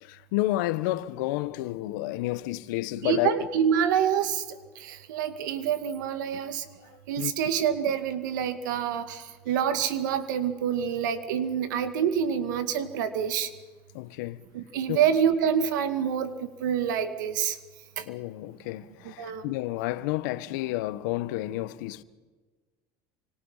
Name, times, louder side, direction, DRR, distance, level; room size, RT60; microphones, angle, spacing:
voice 1, 0.0-3.3 7.2-7.3 13.9-14.4 14.9-15.0 18.0-22.0, left 17 dB, 80° left, 1.1 m, -30 dB
voice 2, 3.0-4.4 4.8-6.6 7.1-13.5 14.5-17.6 19.2-19.4, right 8 dB, 90° right, 2.1 m, -27 dB
28.5 x 25.5 x 5.7 m
supercardioid pair, 90°, 10 cm